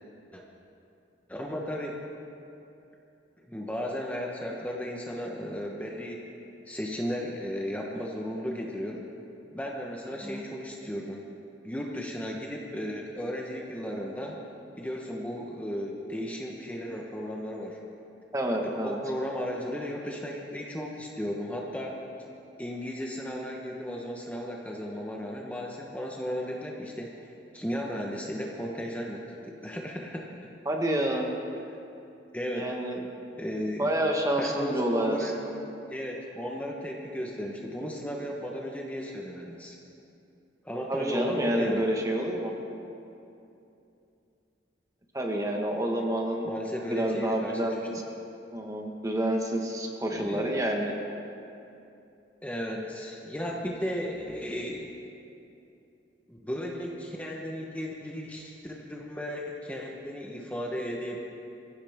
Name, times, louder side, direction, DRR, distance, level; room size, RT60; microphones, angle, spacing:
voice 1, 1.3-2.0 3.4-6.3 6.7-9.0 9.5-11.2 11.6-14.4 14.8-17.8 18.6-22.0 22.6-27.1 27.5-30.3 32.3-32.7 33.4-33.9 34.4-35.4 35.9-39.8 40.6-41.8 46.4-47.8 50.1-50.5 52.4-54.9 56.3-61.2, equal, 10° left, -1 dB, 1.2 m, -35 dB
voice 2, 18.3-19.0 30.6-31.3 32.5-33.0 33.8-35.5 40.9-42.5 45.1-46.5 46.8-47.7 48.5-50.9, right 1 dB, 20° right, 1 dB, 1.5 m, -28 dB
23.5 x 15.5 x 3.6 m, 2.8 s
head